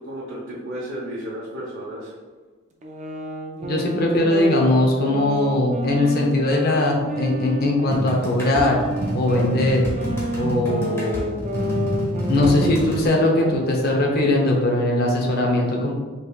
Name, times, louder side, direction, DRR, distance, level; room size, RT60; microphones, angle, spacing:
voice 1, 0.0-2.1, equal, 65° right, -8 dB, 0.9 m, -33 dB
sound 1, 2.8-8.0 8.5-14.1, equal, 35° right, 0.5 m, -30 dB
voice 2, 3.6-8.8 9.1-9.8 10.4-11.4 12.3-15.9, left 1 dB, 45° left, 0 dB, 0.7 m, -20 dB
sound 2, 7.9-13.1, equal, 10° left, 1.0 m, -27 dB
5.3 x 3.2 x 2.3 m, 1.3 s
head